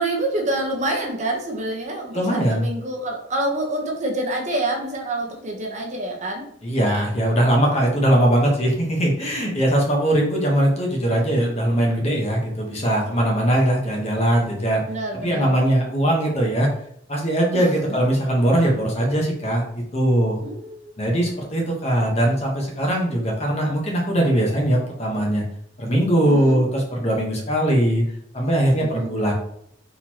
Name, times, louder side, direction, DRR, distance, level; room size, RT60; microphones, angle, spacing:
voice 1, 0.0-6.4 9.4-9.5 14.9-15.5 17.5-18.0 20.4-20.9 26.3-26.6 28.8-29.1, right 1 dB, 40° right, 1 dB, 0.9 m, -27 dB
voice 2, 2.1-2.7 6.6-14.8 15.2-16.7 17.1-20.4 21.0-25.4 25.8-28.1 28.3-29.3, right 1 dB, 35° left, 0 dB, 1.1 m, -20 dB
4.4 x 4.1 x 2.9 m, 0.69 s
head